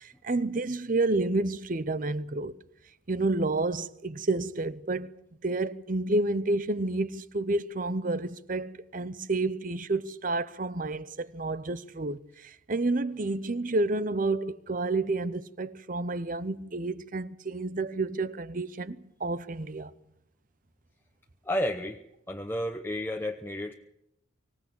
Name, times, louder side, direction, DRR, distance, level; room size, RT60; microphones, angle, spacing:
voice 1, 0.0-2.5 3.1-5.1 5.4-19.9, right 2 dB, 40° right, 0.8 m, -30 dB
voice 2, 21.4-22.0 22.3-23.7, left 1 dB, 10° left, 0.9 m, -31 dB
25.0 x 16.5 x 8.5 m
head